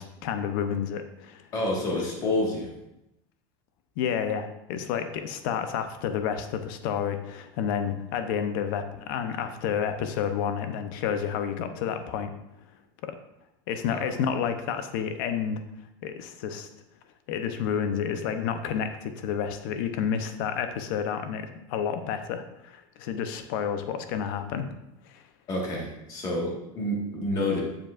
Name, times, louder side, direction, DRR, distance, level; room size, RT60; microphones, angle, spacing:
voice 1, 0.0-1.5 4.0-12.3 13.0-13.2 13.7-15.6 16.0-16.7 17.3-24.7 25.0-25.2, left 8 dB, 65° left, 8 dB, 0.7 m, -30 dB
voice 2, 1.5-2.7 13.9-14.1 25.5-27.6, left 1 dB, 30° left, -1 dB, 1.6 m, -28 dB
7.7 x 7.1 x 2.5 m, 0.88 s
supercardioid pair, 165°, 12 cm